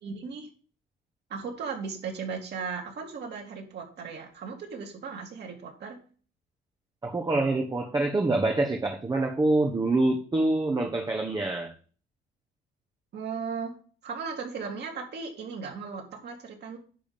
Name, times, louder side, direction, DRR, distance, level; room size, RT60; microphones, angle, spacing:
voice 1, 0.0-0.5 1.3-6.0 13.1-13.7 14.0-16.8, right 5 dB, 55° right, 3.2 m, -36 dB
voice 2, 7.0-11.7, right 2 dB, 20° right, 1.2 m, -26 dB
10.5 x 3.8 x 7.1 m
cardioid pair, 110°, 21 cm